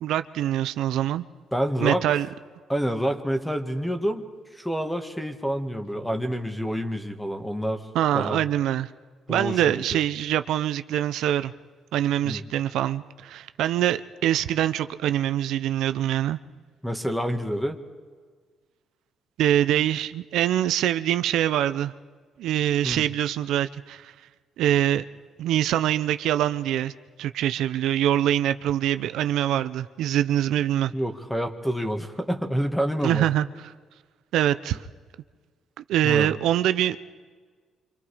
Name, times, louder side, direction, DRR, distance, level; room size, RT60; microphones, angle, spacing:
voice 1, 0.0-1.2 1.8-2.3 7.9-8.9 9.3-11.5 11.9-16.4 19.4-21.9 22.4-24.1 24.6-25.0 25.4-26.9 27.2-30.9 33.0-33.5 34.3-34.8 35.9-37.0, right 11 dB, 85° right, 11 dB, 0.6 m, -24 dB
voice 2, 1.5-2.1 2.7-7.9 8.1-8.4 9.3-9.8 12.2-12.4 16.8-17.8 22.8-23.1 30.9-33.3 36.0-36.3, equal, 5° left, 6 dB, 2.0 m, -28 dB
27.0 x 26.0 x 5.0 m, 1.5 s
cardioid pair, 90°, 0 cm